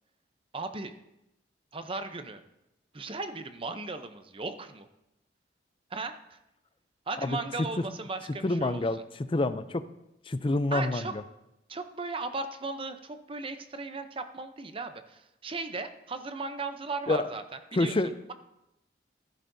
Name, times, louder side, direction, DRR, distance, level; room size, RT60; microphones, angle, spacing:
voice 1, 0.5-0.9 1.7-2.4 2.9-4.9 5.9-6.4 7.1-8.8 10.7-11.1 11.7-17.4 17.7-18.0, right 3 dB, 30° right, 8 dB, 0.6 m, -36 dB
voice 2, 8.4-9.0 9.3-9.8 10.3-11.2 17.1-17.3 17.7-18.1, left 2 dB, 30° left, 12 dB, 0.5 m, -27 dB
14.5 x 11.5 x 2.7 m, 0.88 s
head